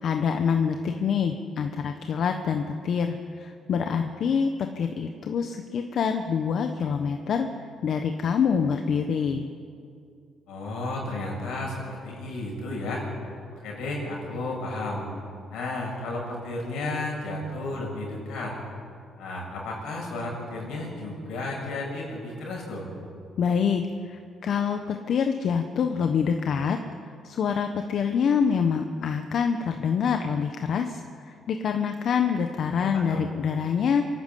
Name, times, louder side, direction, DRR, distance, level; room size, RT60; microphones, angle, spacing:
voice 1, 0.0-9.5 23.4-26.8 27.2-34.1, left 6 dB, 65° left, 6 dB, 1.2 m, -26 dB
voice 2, 10.5-13.0 13.6-15.1 15.5-18.6 19.2-22.9 32.8-33.2, left 2 dB, 85° left, -1 dB, 6.9 m, -33 dB
27.0 x 12.0 x 8.4 m, 2.4 s
cardioid pair, 90°, 0 cm